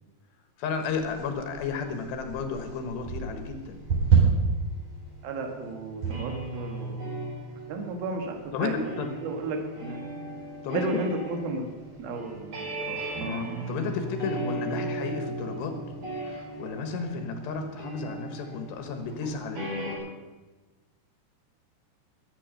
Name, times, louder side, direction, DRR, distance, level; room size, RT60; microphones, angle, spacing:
voice 1, 0.6-3.8 8.5-9.1 10.6-10.9 13.3-15.7 16.3-20.1, left 5 dB, 85° left, 6 dB, 3.7 m, -33 dB
sound 1, 0.8-20.0, right 5 dB, 40° right, 5.2 m, -32 dB
voice 2, 5.2-7.0 7.7-8.8 9.2-10.0 10.7-11.7 12.0-13.4, right 3 dB, 70° right, 3 dB, 3.5 m, -33 dB
20.0 x 8.3 x 6.6 m, 1.2 s
omnidirectional pair, 4.8 m